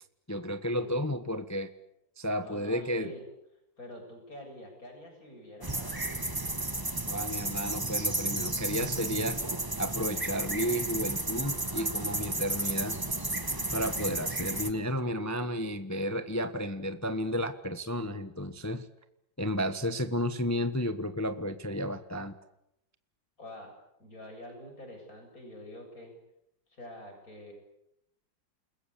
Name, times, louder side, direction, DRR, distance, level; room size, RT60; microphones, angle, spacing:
voice 1, 0.3-1.7 2.2-3.1 7.1-9.4 9.8-13.0 13.7-18.9 19.4-22.3, equal, 10° left, 10 dB, 1.0 m, -32 dB
voice 2, 2.4-3.3 3.8-6.4 23.4-23.7 24.0-26.1 26.7-27.5, left 1 dB, 50° left, 3 dB, 8.1 m, -46 dB
sound 1, 5.6-14.7, right 2 dB, 15° right, 1.4 m, -33 dB
29.5 x 21.5 x 8.5 m, 0.81 s
omnidirectional pair, 1.9 m